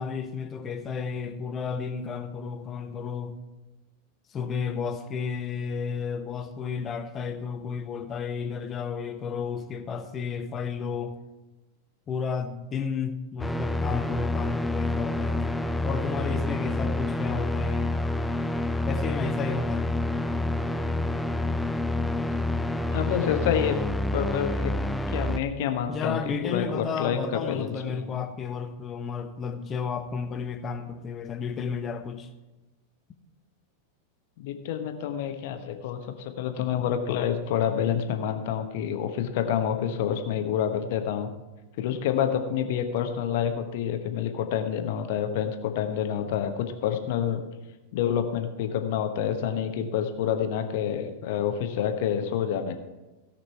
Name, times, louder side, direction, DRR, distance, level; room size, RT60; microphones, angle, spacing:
voice 1, 0.0-3.4 4.3-11.2 12.1-15.5 15.8-18.0 18.9-20.0 25.9-32.3, left 6 dB, 25° left, 1.0 m, -32 dB
sound 1, 13.4-25.4, left 1 dB, 5° left, 0.5 m, -28 dB
voice 2, 22.9-23.8 24.1-24.7 25.1-27.2 27.5-28.2 34.4-41.3 41.8-47.4 47.9-52.7, left 9 dB, 50° left, 1.1 m, -28 dB
17.0 x 5.9 x 4.6 m
figure-of-eight pair, 90°, 0 cm